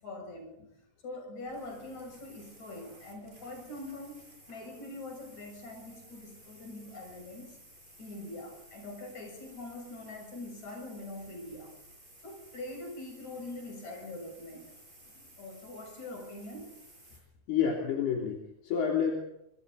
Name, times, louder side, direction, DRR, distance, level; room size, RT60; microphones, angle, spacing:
voice 1, 0.0-0.6 1.0-7.6 8.0-11.7 12.2-14.6 15.4-16.7, left 2 dB, 45° left, 2 dB, 8.5 m, -43 dB
sound 1, 1.4-17.2, right 1 dB, 10° right, 8.0 m, -56 dB
voice 2, 17.5-19.2, left 7 dB, 70° left, -1 dB, 5.0 m, -29 dB
26.0 x 25.5 x 4.1 m, 0.79 s
omnidirectional pair, 4.8 m